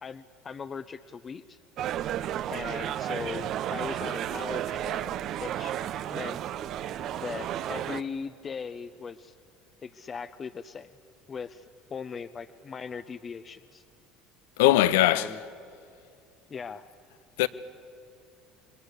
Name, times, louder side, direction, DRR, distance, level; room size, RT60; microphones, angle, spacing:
voice 1, 0.0-1.6 2.5-5.1 5.4-5.8 6.1-6.5 7.2-9.3 9.8-10.9 11.3-13.8 15.0-15.4 16.5-16.9, left 6 dB, 35° left, 0.8 m, -39 dB
sound 1, 1.8-8.0, right 11 dB, 55° right, 0.7 m, -32 dB
voice 2, 14.6-15.4 17.4-17.5, left 14 dB, 75° left, 0.7 m, -21 dB
28.0 x 22.5 x 8.3 m
hypercardioid pair, 70°, 0 cm